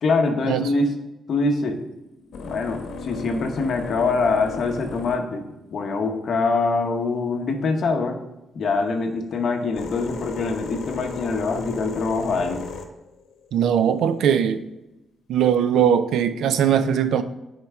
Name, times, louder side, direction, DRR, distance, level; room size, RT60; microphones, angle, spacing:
voice 1, 0.0-0.9 1.3-1.8 2.4-8.2 8.5-12.7, left 3 dB, 45° left, 3 dB, 0.9 m, -24 dB
sound 1, 1.5-7.8 8.6-14.4 15.4-15.9, left 5 dB, 75° left, 1.0 m, -38 dB
voice 2, 13.5-14.6 15.3-17.2, right 8 dB, 80° right, 11 dB, 0.5 m, -20 dB
9.9 x 4.6 x 3.6 m, 0.94 s
cardioid pair, 170°, 0 cm